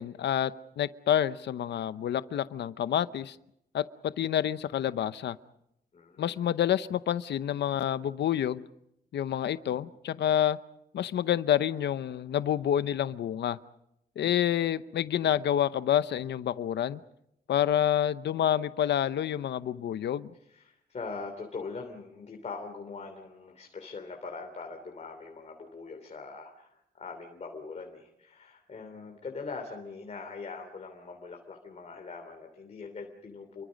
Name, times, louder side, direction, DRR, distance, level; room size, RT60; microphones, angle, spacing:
voice 1, 0.0-3.4 3.7-3.8 4.2-5.4 6.2-8.6 9.1-10.6 10.9-13.6 14.2-17.0 17.5-20.3, left 10 dB, 80° left, 13 dB, 0.8 m, -28 dB
voice 2, 5.9-6.4 20.5-33.6, left 4 dB, 40° left, 3 dB, 3.2 m, -42 dB
29.5 x 23.5 x 5.3 m, 0.78 s
wide cardioid pair, 135°, 18 cm